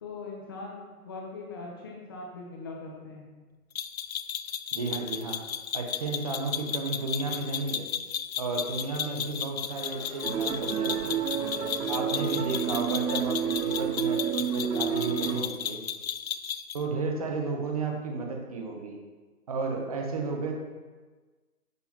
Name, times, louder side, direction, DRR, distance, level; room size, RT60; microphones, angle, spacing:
voice 1, 0.0-3.2, left 3 dB, 15° left, -2 dB, 0.7 m, -41 dB
sound 1, 3.8-16.8, left 9 dB, 65° left, 0.6 m, -34 dB
voice 2, 4.7-5.4 5.7-7.9 8.4-11.2 11.9-15.8 16.7-19.0 19.5-20.5, right 3 dB, 25° right, 2 dB, 0.7 m, -33 dB
sound 2, 8.4-13.4, equal, 5° right, 1.9 m, -46 dB
sound 3, 10.2-15.4, right 9 dB, 85° right, 0.9 m, -29 dB
10.5 x 6.1 x 2.9 m, 1.3 s
hypercardioid pair, 155°, 47 cm